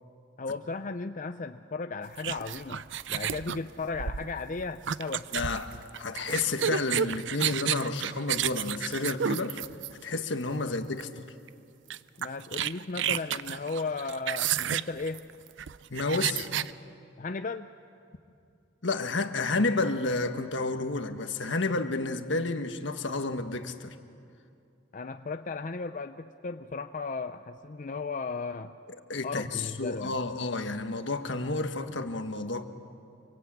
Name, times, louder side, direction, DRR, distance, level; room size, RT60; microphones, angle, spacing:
voice 1, 0.4-5.3 10.5-10.7 12.2-15.3 17.2-17.7 24.9-28.7 29.2-30.2, left 4 dB, 45° left, 9 dB, 0.6 m, -35 dB
sound 1, 2.2-10.2 11.0-11.2 11.5-11.6 11.9-16.7, right 9 dB, 75° right, 0.5 m, -31 dB
voice 2, 5.3-9.6 10.0-11.1 15.9-16.5 18.8-23.9 29.1-32.7, left 3 dB, 75° left, 7 dB, 1.5 m, -30 dB
26.5 x 24.0 x 8.7 m, 2.5 s
head